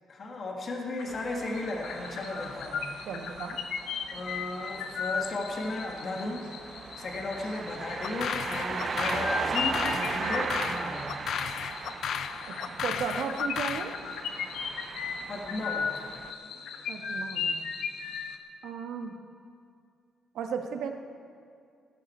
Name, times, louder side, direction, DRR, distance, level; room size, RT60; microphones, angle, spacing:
voice 1, 0.1-2.9 4.1-6.5 6.9-11.2 15.3-16.1, left 2 dB, 40° left, 0 dB, 1.8 m, -35 dB
sound 1, 1.0-1.3 1.5-18.4, left 6 dB, 85° left, 1.0 m, -37 dB
sound 2, 1.1-16.3, right 5 dB, 35° right, 0.4 m, -38 dB
voice 2, 3.1-3.6 12.5-13.9 16.9-17.5 18.6-19.2 20.3-20.9, right 6 dB, 80° right, 5 dB, 1.2 m, -35 dB
sound 3, 8.0-13.9, left 9 dB, 60° left, 0.3 m, -35 dB
16.5 x 13.0 x 4.4 m, 2.4 s
cardioid pair, 150°, 0 cm